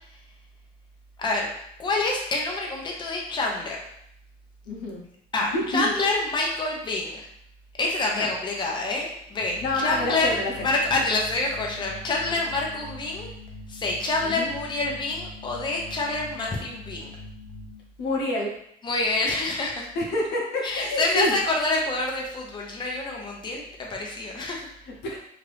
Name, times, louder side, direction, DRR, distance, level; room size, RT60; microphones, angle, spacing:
voice 1, 1.8-3.8 5.3-7.3 7.8-13.3 13.7-17.1 18.8-19.9 20.6-24.7, left 2 dB, 25° left, -1 dB, 0.7 m, -27 dB
voice 2, 4.7-5.0 5.5-5.9 8.1-8.3 9.6-10.5 14.2-14.5 18.0-18.5 20.0-21.4 24.9-25.2, left 1 dB, 85° left, -1 dB, 0.8 m, -28 dB
sound 1, 9.4-17.8, left 1 dB, 75° right, 1.0 m, -43 dB
2.8 x 2.5 x 3.3 m, 0.71 s
cardioid pair, 110°, 17 cm